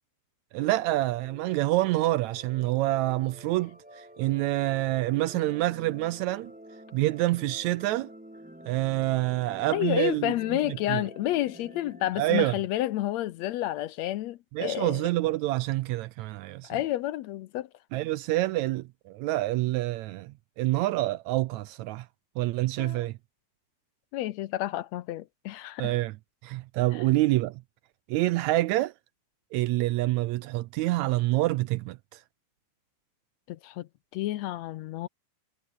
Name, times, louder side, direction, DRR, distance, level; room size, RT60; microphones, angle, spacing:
voice 1, 0.5-6.5 6.9-8.1 8.7-11.0 12.2-12.5 14.5-16.7 17.9-22.1 22.4-23.2 25.8-26.2 26.4-27.6 28.1-28.9 29.5-32.2, right 17 dB, 80° right, 1.8 m, -27 dB
sound 1, 0.6-12.1, right 1 dB, 5° right, 0.8 m, -49 dB
voice 2, 9.7-15.0 16.7-17.7 22.8-23.1 24.1-25.9 33.5-35.1, left 14 dB, 75° left, 1.8 m, -30 dB
omnidirectional pair, 3.5 m